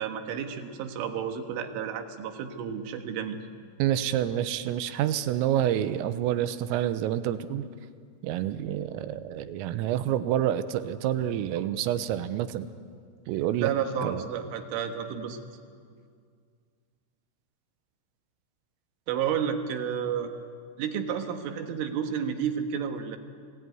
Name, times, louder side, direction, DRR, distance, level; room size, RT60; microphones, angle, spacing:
voice 1, 0.0-3.4 13.6-15.4 19.1-20.3 20.8-23.2, right 8 dB, 75° right, 6 dB, 3.8 m, -31 dB
voice 2, 3.8-7.7 8.2-12.7 13.3-13.7 14.0-14.3, right 11 dB, 90° right, 11 dB, 3.6 m, -28 dB
29.5 x 19.5 x 9.4 m, 2.1 s
omnidirectional pair, 5.9 m